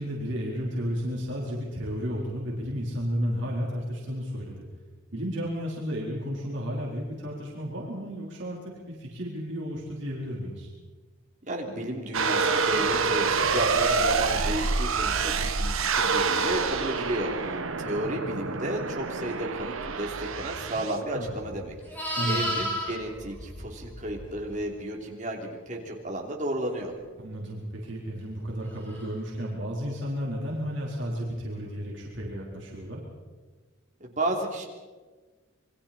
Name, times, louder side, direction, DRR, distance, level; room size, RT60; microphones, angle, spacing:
voice 1, 0.0-4.6 5.1-8.6 8.9-10.7 21.1-21.3 22.2-22.4 27.2-33.0, equal, 55° right, -4 dB, 4.1 m, -32 dB
voice 2, 11.5-26.9 34.0-34.7, right 1 dB, 35° right, 0 dB, 3.3 m, -33 dB
sound 1, 12.1-21.0, right 4 dB, 75° right, 1.3 m, -27 dB
Livestock farm animals working animals, 21.4-24.5 28.9-29.1, equal, 10° left, 6.5 m, -33 dB
28.0 x 22.5 x 4.4 m, 1.3 s
head